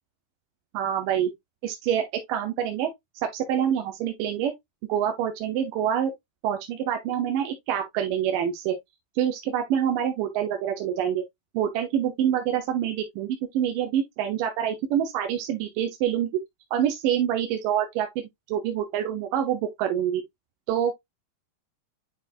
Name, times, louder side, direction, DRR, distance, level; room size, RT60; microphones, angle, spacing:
voice 1, 0.7-1.3 1.6-2.0 2.3-2.9 3.3-4.5 4.9-6.1 6.4-8.8 9.2-11.2 11.5-16.4 16.7-20.2 20.7-20.9, right 9 dB, 75° right, 2.5 m, -26 dB
9.7 x 3.9 x 2.5 m
omnidirectional pair, 4.2 m